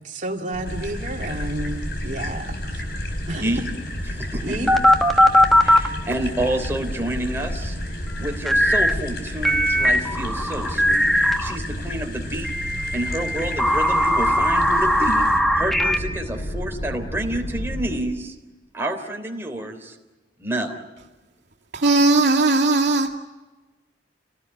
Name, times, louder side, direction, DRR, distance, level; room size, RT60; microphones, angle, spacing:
voice 1, 0.0-2.8 3.3-3.5 4.4-4.7, right 1 dB, 45° right, 2 dB, 2.6 m, -31 dB
sound 1, 0.5-18.0, equal, 45° left, 4.0 m, -32 dB
sound 2, 0.6-15.4, left 3 dB, 65° left, 4.6 m, -39 dB
voice 2, 4.1-4.6 5.6-7.8 8.2-12.5 12.9-18.4 18.7-20.0 20.4-20.8, right 1 dB, 15° right, 2 dB, 3.4 m, -29 dB
sound 3, 4.7-5.9 8.5-8.9 9.4-11.6 12.4-16.0, equal, ahead, 1.4 m, -19 dB
voice 3, 21.7-23.2, right 2 dB, 80° right, 0 dB, 2.2 m, -18 dB
29.0 x 18.5 x 9.8 m, 1.2 s
head